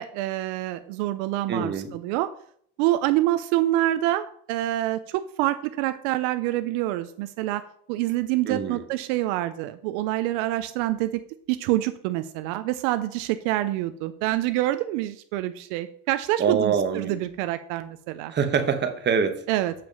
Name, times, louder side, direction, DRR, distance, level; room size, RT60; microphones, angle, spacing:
voice 1, 0.0-2.3 2.8-7.6 7.9-11.2 11.5-18.3 19.5-19.7, right 15 dB, 75° right, 11 dB, 0.6 m, -26 dB
voice 2, 1.5-1.9 8.5-8.8 16.4-17.1 18.3-19.4, right 6 dB, 30° right, 7 dB, 1.1 m, -24 dB
7.5 x 4.8 x 5.3 m, 0.62 s
supercardioid pair, 110°, 36 cm